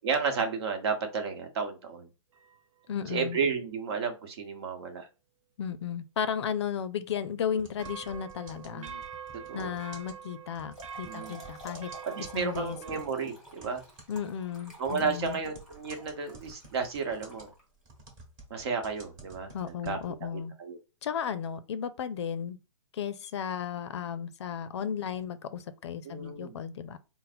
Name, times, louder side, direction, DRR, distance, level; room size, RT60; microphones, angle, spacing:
voice 1, 0.0-2.1 3.1-5.1 8.7-9.0 9.3-9.7 11.0-11.4 12.0-13.8 14.8-17.5 18.5-20.0 20.3-20.8 26.0-26.6, right 5 dB, 55° right, 1.1 m, -32 dB
sound 1, 2.3-2.9 7.8-13.1, right 8 dB, 80° right, 0.5 m, -45 dB
voice 2, 2.9-3.4 5.6-8.9 9.5-11.9 12.2-12.8 14.1-15.4 19.5-20.5 21.0-22.6 22.9-27.0, left 8 dB, 60° left, 0.5 m, -34 dB
sound 2, 7.6-13.2 13.6-20.3, right 2 dB, 25° right, 1.2 m, -51 dB
Trickle dribble / Fill (with liquid), 10.5-18.0, equal, ahead, 1.2 m, -52 dB
4.0 x 2.0 x 4.2 m
hypercardioid pair, 160°, 16 cm